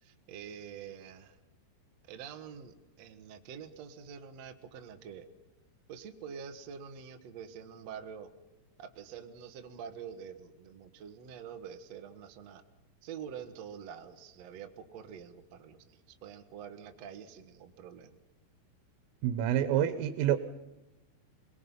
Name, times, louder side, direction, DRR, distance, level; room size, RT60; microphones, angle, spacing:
voice 1, 0.0-1.4 2.0-5.2 5.9-8.3 8.8-12.6 13.0-18.2, right 7 dB, 65° right, 7 dB, 1.6 m, -46 dB
voice 2, 19.2-20.4, right 11 dB, 85° right, 12 dB, 3.6 m, -27 dB
27.5 x 20.0 x 5.7 m, 1.1 s
omnidirectional pair, 5.7 m